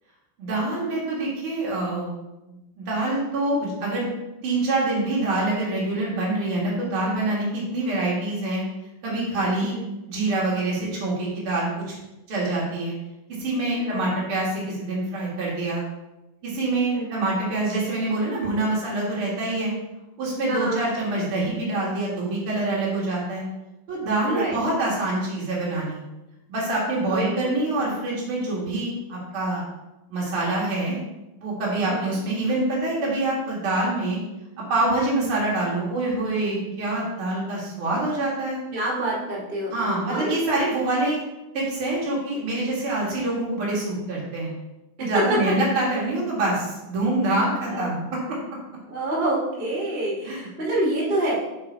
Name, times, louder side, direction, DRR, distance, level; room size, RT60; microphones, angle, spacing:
voice 1, 0.4-2.1 2.8-4.1 4.4-8.6 9.0-9.7 10.1-11.7 12.3-12.9 13.4-15.8 16.4-19.7 20.2-23.4 23.9-26.0 26.5-29.6 30.1-31.0 31.4-34.2 34.7-38.6 39.7-41.2 41.5-44.5 45.0-48.0 50.2-50.5, right 2 dB, 70° right, -5 dB, 1.3 m, -25 dB
voice 2, 13.8-14.1 16.9-17.2 20.4-20.9 24.3-24.6 27.1-27.2 31.8-32.2 38.7-40.3 45.0-45.1 47.7-47.9 48.9-51.4, right 1 dB, 35° right, -5 dB, 0.8 m, -27 dB
5.8 x 5.1 x 4.5 m, 0.98 s
omnidirectional pair, 5.3 m